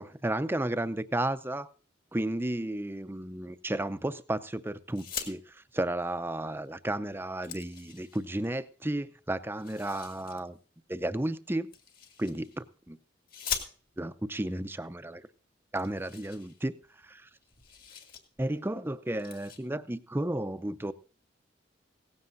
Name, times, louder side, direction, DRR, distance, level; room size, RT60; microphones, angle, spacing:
voice 1, 0.0-1.7 2.1-10.6 10.9-11.7 12.2-13.0 14.0-15.2 15.7-16.7 17.0-17.3 18.4-20.9, right 1 dB, 10° right, 0.6 m, -33 dB
sound 1, 4.9-5.3 6.6-6.7 7.1-8.5 9.5-10.4 11.7-12.6 13.3-14.1 15.0-15.1 15.3-15.4 15.7-17.1 17.3-18.2 18.6-18.8 19.1-19.6, left 7 dB, 50° left, 2.4 m, -41 dB
17.0 x 15.5 x 2.6 m
head